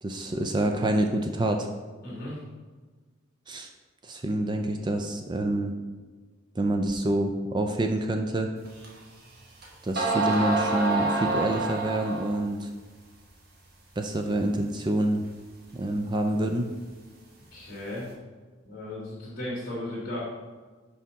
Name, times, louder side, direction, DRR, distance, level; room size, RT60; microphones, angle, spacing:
voice 1, 0.0-1.7 3.5-3.7 4.0-5.8 6.6-8.5 9.8-12.7 14.0-15.2 15.7-16.7, right 1 dB, 20° right, 5 dB, 0.4 m, -27 dB
voice 2, 2.0-2.4 17.5-18.1 18.6-20.2, left 1 dB, 45° left, -9 dB, 1.9 m, -35 dB
sound 1, 8.8-8.9 9.6-9.7 10.0-12.4, right 3 dB, 50° right, 1.3 m, -27 dB
5.9 x 4.1 x 5.7 m, 1.4 s
head